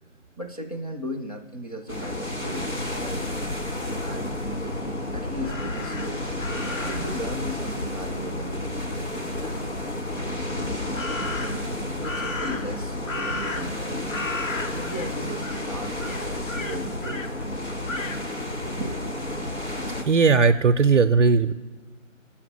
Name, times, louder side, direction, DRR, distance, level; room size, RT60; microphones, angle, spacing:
voice 1, 0.4-3.3 4.0-4.8 5.1-6.3 6.8-9.7 10.1-10.8 11.1-14.1 14.7-17.3 18.8-19.0, equal, 30° left, 2 dB, 0.7 m, -37 dB
sound 1, 1.9-20.0, left 1 dB, 60° left, 1.8 m, -31 dB
Crow, 5.4-7.2 10.9-11.7 12.0-13.8 14.1-15.1 15.4-15.7 16.0-17.3 17.9-18.2, left 2 dB, 75° left, 1.0 m, -34 dB
voice 2, 20.1-21.5, right 5 dB, 65° right, 7 dB, 0.5 m, -18 dB
9.1 x 5.8 x 6.4 m, 1.4 s
figure-of-eight pair, 170°, 39 cm